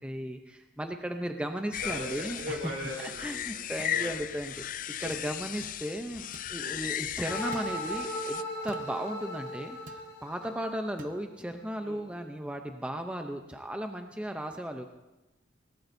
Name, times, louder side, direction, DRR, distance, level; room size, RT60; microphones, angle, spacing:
voice 1, 0.0-2.6 3.0-4.6 5.0-14.8, right 1 dB, 5° right, 5 dB, 0.6 m, -36 dB
sound 1, 1.7-8.4, left 11 dB, 45° left, 0.4 m, -36 dB
sound 2, 2.4-2.5 3.8-4.0 5.1-5.3 6.3-6.6 7.5-7.8 8.7-8.9 9.9-10.1 11.0-11.2, right 2 dB, 45° right, 0.9 m, -48 dB
voice 2, 2.4-3.6 3.9-4.2 5.0-5.3 6.6-6.8 11.8-12.0, equal, 70° right, 0 dB, 4.1 m, -39 dB
sound 3, 7.3-11.3, left 1 dB, 65° left, 4.2 m, -37 dB
20.0 x 18.5 x 2.7 m, 1.0 s
head